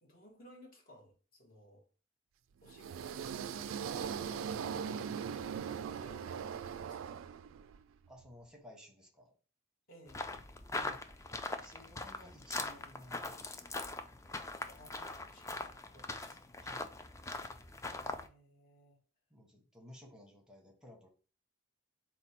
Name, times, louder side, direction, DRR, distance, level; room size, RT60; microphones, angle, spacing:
voice 1, 0.0-1.9 2.6-7.0 9.9-10.4 14.6-16.4 17.9-19.0, equal, 45° left, 1.2 m, -59 dB
sound 1, 2.7-7.8, right 7 dB, 75° right, 0.3 m, -40 dB
voice 2, 8.1-9.3 10.7-11.3 11.6-13.6 16.6-17.0 19.3-21.1, left 1 dB, 5° right, 0.8 m, -56 dB
sound 2, 10.1-18.3, left 2 dB, 15° left, 0.3 m, -42 dB
4.2 x 2.2 x 4.2 m
head